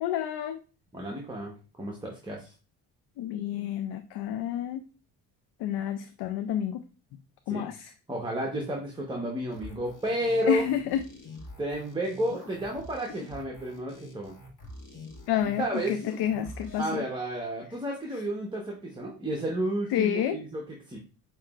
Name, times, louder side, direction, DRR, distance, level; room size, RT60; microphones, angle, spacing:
voice 1, 0.0-0.6 3.2-4.8 5.6-6.8 7.5-7.9 10.5-11.0 15.3-17.0 19.9-20.4, left 10 dB, 65° left, 9 dB, 0.5 m, -29 dB
voice 2, 0.9-2.5 7.5-7.7 8.1-10.6 11.6-14.3 15.6-16.0 16.8-21.0, right 1 dB, 10° right, -1 dB, 1.1 m, -32 dB
sound 1, 9.5-16.9, left 1 dB, 45° left, 1.7 m, -45 dB
6.4 x 3.0 x 2.4 m, 0.35 s
supercardioid pair, 65°, 43 cm